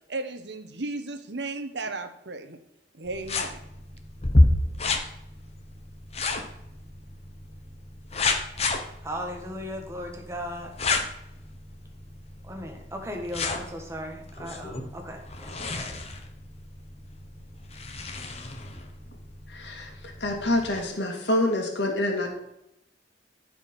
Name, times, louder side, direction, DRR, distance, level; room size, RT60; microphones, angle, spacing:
voice 1, 0.1-2.6 3.0-3.6, right 3 dB, 65° right, 8 dB, 1.1 m, -34 dB
sound 1, 3.1-20.8, left 2 dB, 35° left, 1.0 m, -31 dB
voice 2, 9.0-10.7 12.4-16.0, equal, 15° right, 2 dB, 1.6 m, -37 dB
voice 3, 19.5-19.9 20.2-22.3, left 1 dB, 65° left, 2 dB, 2.1 m, -26 dB
14.5 x 5.0 x 5.3 m, 0.83 s
head